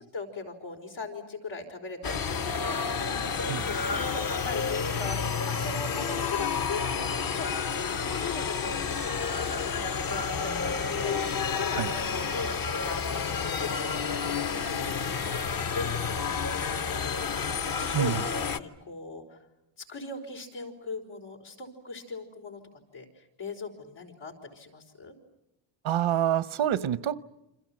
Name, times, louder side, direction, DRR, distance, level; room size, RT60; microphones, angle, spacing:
voice 1, 0.1-6.9 7.3-7.5 7.8-14.0 14.3-19.4 19.8-22.6 22.9-25.1, left 4 dB, 85° left, 2 dB, 5.1 m, -40 dB
sound 1, 2.0-18.6, left 6 dB, 45° left, 1.0 m, -30 dB
voice 2, 25.8-27.2, right 11 dB, 80° right, 16 dB, 0.9 m, -27 dB
28.0 x 26.0 x 7.6 m, 0.89 s
cardioid pair, 110°, 46 cm